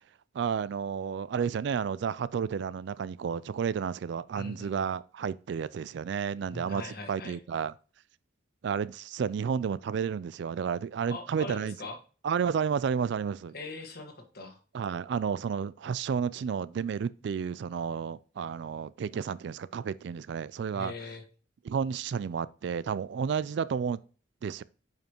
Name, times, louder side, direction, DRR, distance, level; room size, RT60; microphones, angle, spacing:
voice 1, 0.3-7.7 8.6-11.8 12.2-13.5 14.7-20.9 21.7-24.0 24.4-24.6, right 7 dB, 60° right, 0.3 m, -31 dB
voice 2, 4.3-4.8 6.5-7.4 11.1-12.0 13.5-14.6 20.7-21.2, left 3 dB, 50° left, 1.4 m, -41 dB
9.3 x 5.2 x 2.9 m
head